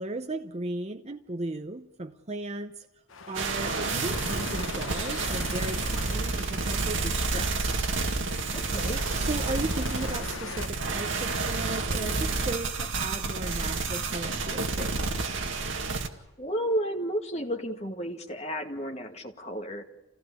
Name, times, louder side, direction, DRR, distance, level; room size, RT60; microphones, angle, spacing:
voice 1, 0.0-2.9 3.3-7.7 9.2-15.2, right 2 dB, 30° right, 0.7 m, -36 dB
sound 1, 3.1-10.7, left 4 dB, 70° left, 1.1 m, -41 dB
sound 2, 3.3-16.1, right 3 dB, 65° right, 2.1 m, -30 dB
voice 2, 8.5-9.1 16.4-19.8, equal, 30° left, 2.1 m, -32 dB
27.5 x 17.0 x 8.6 m
head